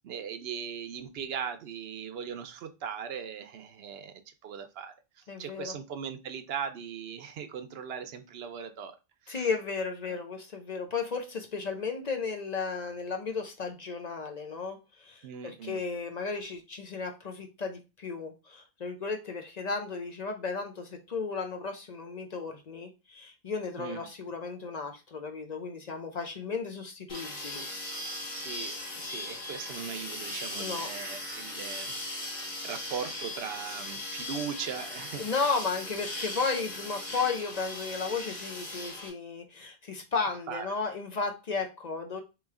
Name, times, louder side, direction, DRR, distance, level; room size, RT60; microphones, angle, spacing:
voice 1, 0.0-4.1 4.4-4.9 5.4-9.0 9.3-9.5 15.2-15.8 23.8-24.1 28.3-32.0 32.4-35.3 40.5-40.8, right 7 dB, 75° right, 0.8 m, -39 dB
voice 2, 5.3-5.7 9.3-27.6 30.6-30.9 35.2-42.2, left 4 dB, 50° left, 0.7 m, -34 dB
sound 1, 27.1-39.1, left 1 dB, 70° left, 1.4 m, -38 dB
3.1 x 3.1 x 3.6 m
omnidirectional pair, 1.0 m